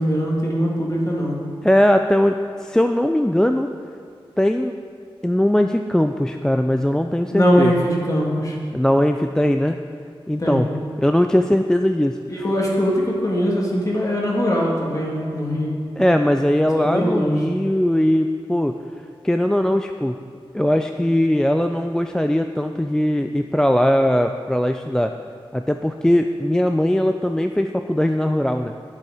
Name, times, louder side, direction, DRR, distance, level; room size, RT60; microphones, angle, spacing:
voice 1, 0.0-1.4 7.3-8.6 10.4-10.6 12.3-15.8 16.7-17.4, equal, 35° left, -4 dB, 2.0 m, -21 dB
voice 2, 1.6-3.7 4.4-4.8 5.2-7.7 8.7-9.8 10.3-10.7 11.0-12.2 16.0-18.8 19.2-20.2 20.5-25.1 25.5-28.7, left 1 dB, 5° left, 6 dB, 0.3 m, -19 dB
10.5 x 7.3 x 4.9 m, 2.1 s
wide cardioid pair, 110°, 10 cm